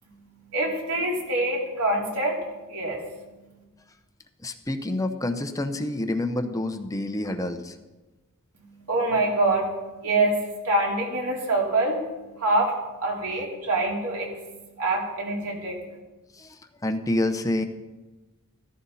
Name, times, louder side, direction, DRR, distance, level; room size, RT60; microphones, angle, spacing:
voice 1, 0.0-3.6 8.5-16.0, right 2 dB, 85° right, -2 dB, 3.9 m, -26 dB
voice 2, 4.4-7.8 16.3-17.6, left 1 dB, 15° left, 7 dB, 0.8 m, -28 dB
15.0 x 14.5 x 4.2 m, 1.2 s
head